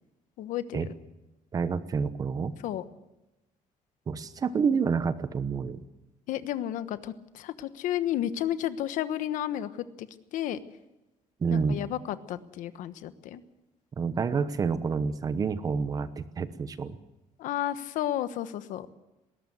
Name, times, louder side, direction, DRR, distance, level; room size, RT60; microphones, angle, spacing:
voice 1, 0.4-0.9 2.6-2.8 6.3-10.6 11.5-13.4 17.4-18.9, left 12 dB, 80° left, 12 dB, 1.2 m, -32 dB
voice 2, 1.5-2.5 4.1-5.8 11.4-11.8 14.0-17.0, right 5 dB, 25° right, 13 dB, 1.0 m, -28 dB
20.5 x 18.0 x 7.9 m, 0.97 s
cardioid pair, 175°, 13 cm